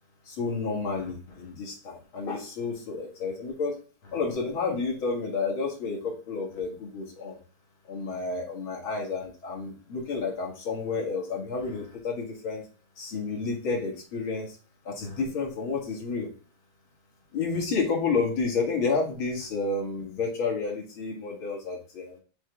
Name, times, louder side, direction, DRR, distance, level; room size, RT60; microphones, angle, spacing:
voice 1, 0.3-3.7 4.0-7.4 7.9-12.6 13.0-14.6 14.8-16.3 17.3-22.2, left 4 dB, 70° left, -1 dB, 2.9 m, -30 dB
6.2 x 3.8 x 4.6 m, 0.37 s
omnidirectional pair, 2.4 m